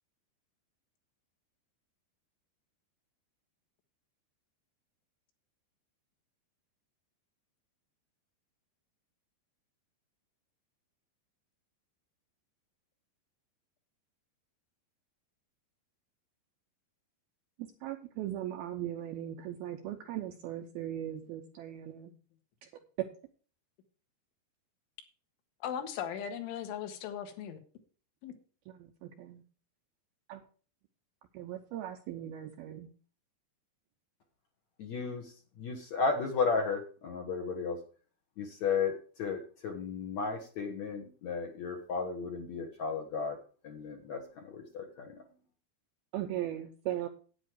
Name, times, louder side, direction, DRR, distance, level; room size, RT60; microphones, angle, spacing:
voice 1, 17.6-22.1 23.0-23.1 28.8-29.4 30.3-30.4 31.3-32.9 46.1-47.1, right 12 dB, 80° right, 2.2 m, -38 dB
voice 2, 25.6-27.6 28.2-28.3, left 8 dB, 90° left, 4.0 m, -38 dB
voice 3, 34.8-37.8 38.4-38.9 39.2-43.4 43.6-45.1, left 5 dB, 70° left, 1.7 m, -34 dB
10.0 x 9.4 x 4.6 m
omnidirectional pair, 5.3 m